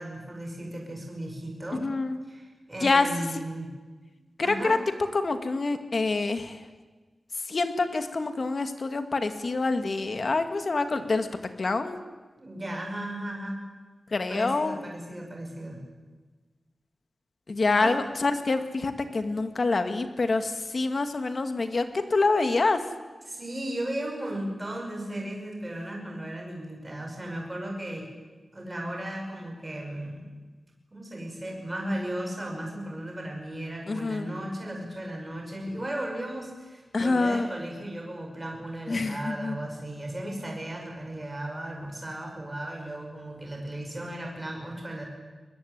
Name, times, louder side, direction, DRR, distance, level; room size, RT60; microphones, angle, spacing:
voice 1, 0.0-1.9 2.3-3.7 4.4-4.8 12.4-13.7 14.3-15.8 17.7-18.0 23.3-28.1 28.5-30.3 30.9-45.1, right 1 dB, 20° right, 1 dB, 5.8 m, -36 dB
voice 2, 1.7-2.2 2.8-3.1 4.4-4.8 5.1-6.6 7.5-11.3 11.6-12.0 14.1-14.8 17.5-22.8 33.9-34.3 36.9-37.5 38.9-39.6, left 3 dB, 45° left, 8 dB, 2.1 m, -26 dB
23.5 x 21.0 x 9.7 m, 1.3 s
wide cardioid pair, 135°, 0 cm